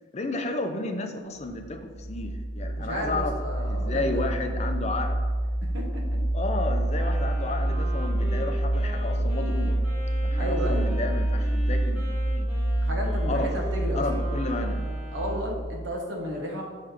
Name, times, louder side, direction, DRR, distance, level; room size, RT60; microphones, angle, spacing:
voice 1, 0.1-3.3 3.7-5.2 6.3-9.8 10.2-12.0 12.3-12.5 13.3-13.5 14.0-14.8, left 2 dB, 35° left, 5 dB, 0.5 m, -32 dB
sound 1, 1.5-16.0, right 1 dB, 10° left, 1.4 m, -27 dB
voice 2, 2.8-4.3 5.6-6.0 10.4-10.9 12.8-14.3 15.1-16.7, equal, 75° right, 0 dB, 1.1 m, -33 dB
Wind instrument woodwind instrument, 6.9-15.5, right 1 dB, 10° right, 1.4 m, -41 dB
6.1 x 3.2 x 5.0 m, 1.5 s
head